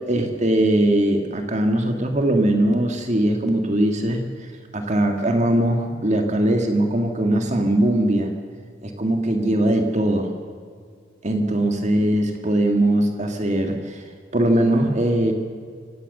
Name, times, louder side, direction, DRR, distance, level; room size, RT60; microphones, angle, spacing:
voice 1, 0.1-8.3 8.8-10.3 11.2-14.0 14.3-15.3, right 1 dB, 40° right, 4 dB, 1.9 m, -20 dB
26.5 x 16.5 x 6.7 m, 2.1 s
head